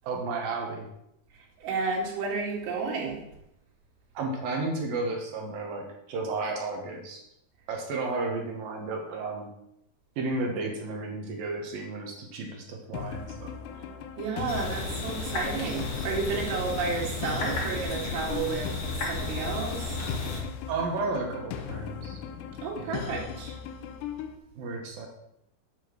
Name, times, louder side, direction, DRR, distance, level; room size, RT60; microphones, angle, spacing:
voice 1, 0.0-0.9 4.1-7.2 7.7-9.5 10.2-13.5 20.7-22.2 22.8-23.1 24.6-25.1, right 3 dB, 65° right, 1 dB, 3.0 m, -33 dB
voice 2, 1.6-3.2 14.2-18.7 19.0-19.8 22.6-23.6, right 4 dB, 90° right, -2 dB, 4.4 m, -31 dB
sound 1, 12.9-24.4, left 7 dB, 85° left, 3.0 m, -38 dB
sound 2, 14.5-20.4, left 2 dB, 50° left, 1.7 m, -33 dB
9.3 x 5.7 x 6.4 m, 0.81 s
omnidirectional pair, 4.8 m